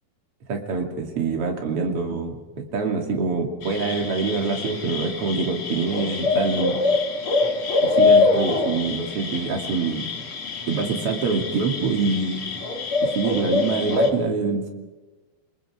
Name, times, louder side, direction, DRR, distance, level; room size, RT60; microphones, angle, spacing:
voice 1, 0.5-6.8 8.0-10.1 10.7-12.5 13.0-14.7, right 4 dB, 40° right, 2 dB, 3.0 m, -25 dB
sound 1, 3.6-14.1, left 3 dB, 40° left, 2.3 m, -24 dB
28.5 x 21.5 x 4.9 m, 1.2 s
omnidirectional pair, 4.8 m